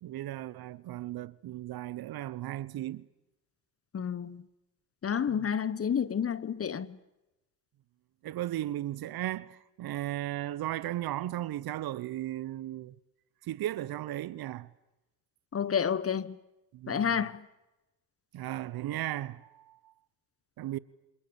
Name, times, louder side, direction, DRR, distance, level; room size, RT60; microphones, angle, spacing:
voice 1, 0.0-3.1 5.3-5.5 8.2-13.0 13.4-14.7 16.7-17.2 18.3-19.9 20.6-20.8, right 14 dB, 45° right, 1.1 m, -36 dB
voice 2, 3.9-4.4 5.0-7.0 15.5-16.4 16.9-17.5, left 7 dB, 30° left, 1.3 m, -30 dB
28.0 x 27.0 x 7.2 m
hypercardioid pair, 70°, 49 cm